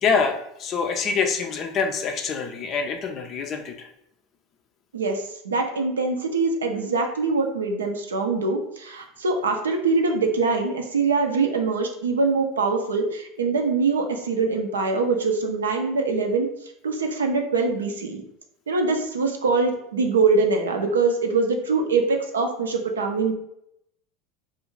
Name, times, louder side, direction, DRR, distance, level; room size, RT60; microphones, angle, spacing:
voice 1, 0.0-3.9, left 5 dB, 45° left, 4 dB, 0.4 m, -25 dB
voice 2, 4.9-16.5 16.8-18.2 18.7-23.4, right 4 dB, 90° right, 3 dB, 0.4 m, -23 dB
2.4 x 2.4 x 3.0 m, 0.78 s
hypercardioid pair, 85°, 0 cm